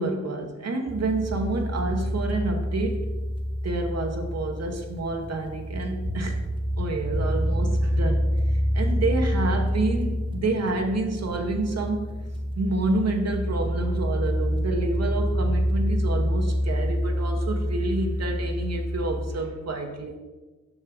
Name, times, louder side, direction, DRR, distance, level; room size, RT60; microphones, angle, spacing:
voice 1, 0.0-3.1 3.6-6.4 6.8-12.1 12.6-20.2, right 2 dB, 45° right, 3 dB, 1.0 m, -28 dB
sound 1, 0.9-19.3, equal, 15° right, 0.9 m, -27 dB
7.1 x 5.5 x 3.4 m, 1.2 s
hypercardioid pair, 50°, 37 cm